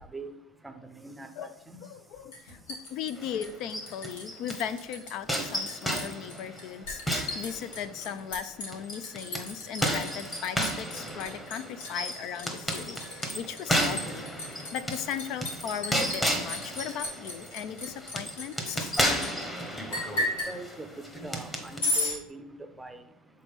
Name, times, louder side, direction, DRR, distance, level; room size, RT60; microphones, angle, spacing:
voice 1, 0.6-1.8 6.4-6.5 7.8-7.9 20.2-20.9 21.2-23.0, right 2 dB, 5° right, 8 dB, 0.6 m, -43 dB
voice 2, 1.8-2.6 2.9-18.9, left 8 dB, 55° left, 13 dB, 0.4 m, -37 dB
Liquid, 2.3-4.2 4.5-5.1 5.4-19.3 19.9-20.5 21.8-22.2, left 2 dB, 85° left, 2.0 m, -35 dB
sound 1, 3.2-4.8 5.3-8.1 8.7-21.8, equal, 10° left, 1.1 m, -33 dB
7.5 x 4.0 x 3.6 m, 0.86 s
supercardioid pair, 120°, 0 cm